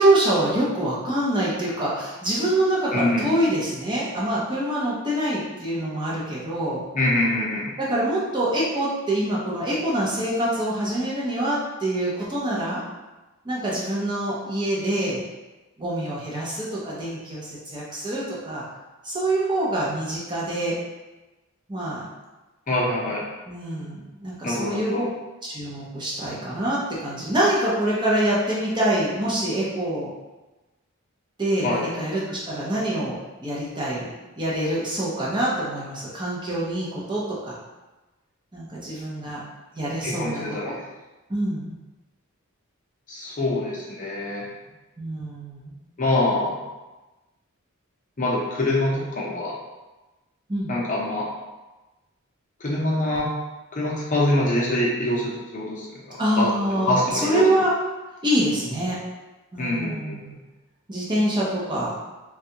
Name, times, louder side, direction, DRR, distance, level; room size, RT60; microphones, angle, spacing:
voice 1, 0.0-6.8 7.8-12.8 13.4-15.2 15.8-18.6 19.0-20.8 21.7-22.0 23.5-25.0 25.4-30.1 31.4-34.1 34.3-37.6 38.5-39.4 39.7-40.7 41.3-41.8 45.0-45.7 50.5-50.8 56.2-57.7 58.2-59.0 59.5-60.3 60.9-61.9, right 1 dB, 20° right, -6 dB, 0.6 m, -25 dB
voice 2, 2.9-3.2 6.9-7.7 22.7-23.2 24.4-25.0 31.6-31.9 40.0-40.8 43.1-44.5 46.0-46.6 48.2-49.6 50.7-51.3 52.6-53.3 53.7-57.5 59.6-60.2, left 1 dB, 35° left, -5 dB, 0.6 m, -25 dB
3.4 x 2.3 x 2.8 m, 1.1 s
head